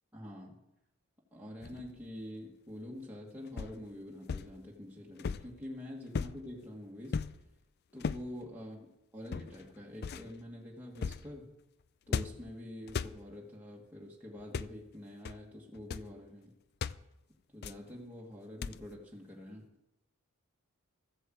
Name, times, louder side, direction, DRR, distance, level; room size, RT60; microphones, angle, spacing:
voice 1, 0.1-0.6 1.3-7.2 7.9-11.5 12.1-16.5 17.5-19.6, left 1 dB, 10° right, -4 dB, 1.9 m, -46 dB
sound 1, 1.6-2.0 3.6-3.8 4.3-4.5 5.2-5.6 6.1-6.5 7.1-7.4 8.0-8.3 9.3-9.6 10.0-10.3 11.0-11.3 12.1-12.5 12.9-13.2 14.4-14.8 15.3-15.4 15.7-16.1 16.8-17.0 17.6-17.9 18.6-18.9, left 5 dB, 50° left, 0.4 m, -37 dB
14.0 x 7.9 x 7.7 m, 0.90 s
head